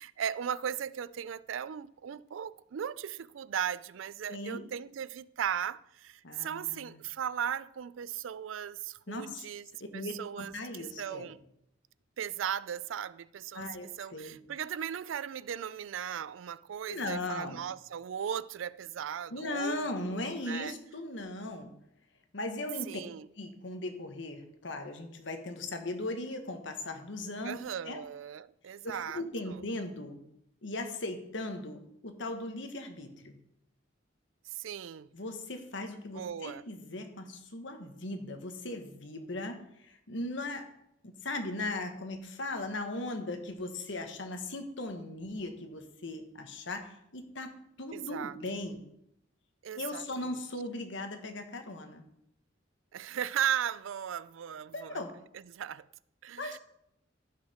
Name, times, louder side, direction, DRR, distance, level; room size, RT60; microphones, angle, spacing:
voice 1, 0.0-9.7 9.9-10.5 11.0-11.4 12.2-13.7 14.0-20.7 22.9-23.3 27.4-29.6 34.5-35.1 36.1-36.6 47.9-48.3 49.6-50.4 52.9-55.0 55.5-55.9 56.2-56.6, right 9 dB, 90° right, 0.4 m, -37 dB
voice 2, 4.3-4.6 6.2-7.0 9.1-9.4 9.9-11.3 13.5-14.4 16.9-17.6 19.3-21.7 22.3-23.0 23.4-28.0 28.8-30.2 30.6-33.4 35.1-40.7 41.0-48.8 49.7-52.0 54.7-55.1 56.4-56.6, left 2 dB, 70° left, 1.4 m, -38 dB
15.5 x 5.8 x 4.4 m
head